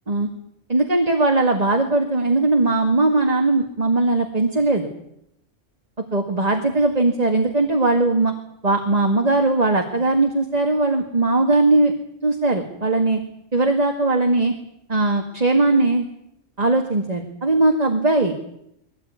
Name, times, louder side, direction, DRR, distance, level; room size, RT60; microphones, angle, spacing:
voice 1, 0.7-4.9 6.1-8.3 8.6-11.9 12.2-13.2 13.5-14.5 14.9-16.1 16.6-18.3, right 2 dB, 30° right, 3 dB, 2.0 m, -19 dB
22.0 x 17.5 x 9.6 m, 0.77 s
omnidirectional pair, 1.3 m